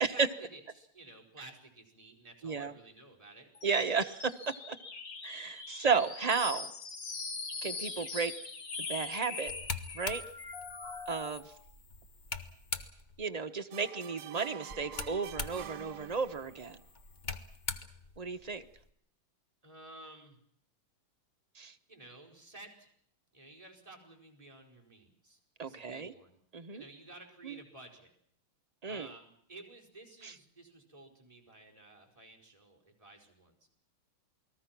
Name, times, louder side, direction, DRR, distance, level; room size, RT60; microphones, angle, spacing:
voice 1, 0.1-3.5 19.6-20.4 21.9-22.9 23.3-26.4 26.7-28.1 28.9-33.6, right 2 dB, 15° right, -1 dB, 4.9 m, -53 dB
voice 2, 2.4-2.7 3.6-4.8 5.2-6.7 7.6-8.3 8.9-9.5 9.9-10.2 11.1-11.5 13.2-16.8 18.2-18.6 21.6-21.7 25.6-26.1 26.5-26.8 27.4-27.6 28.8-29.1 30.2-30.3, right 5 dB, 40° right, 7 dB, 0.5 m, -33 dB
sound 1, 3.5-11.5, left 4 dB, 55° left, 3.0 m, -42 dB
sound 2, 9.5-13.2 14.7-18.9, left 4 dB, 30° left, 1.0 m, -43 dB
sound 3, 13.7-16.7, right 10 dB, 80° right, 2.0 m, -47 dB
28.5 x 20.0 x 6.0 m, 0.65 s
omnidirectional pair, 2.3 m